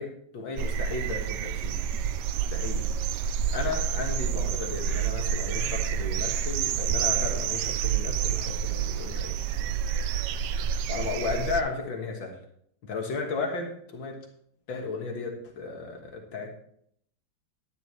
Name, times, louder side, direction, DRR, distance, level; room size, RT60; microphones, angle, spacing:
voice 1, 0.0-1.8 2.5-2.9 3.5-9.4 10.9-12.4 12.8-14.2 14.7-16.5, left 4 dB, 85° left, 1 dB, 2.3 m, -34 dB
sound 1, 0.6-11.6, right 8 dB, 75° right, 1.1 m, -28 dB
12.0 x 11.0 x 3.1 m, 0.66 s
omnidirectional pair, 2.0 m